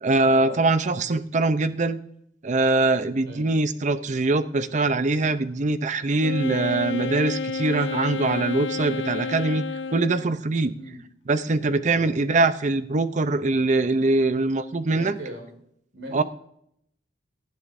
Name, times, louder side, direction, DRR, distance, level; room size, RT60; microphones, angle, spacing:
voice 1, 0.0-2.0 2.4-9.6 9.9-10.7 11.3-15.2 16.1-16.2, right 2 dB, 40° right, 12 dB, 0.6 m, -23 dB
Wind instrument woodwind instrument, 6.2-10.3, left 4 dB, 75° left, 0.6 m, -30 dB
voice 2, 14.9-15.5 15.9-16.2, right 1 dB, 80° right, 2 dB, 4.6 m, -38 dB
18.0 x 12.0 x 2.6 m, 0.72 s
head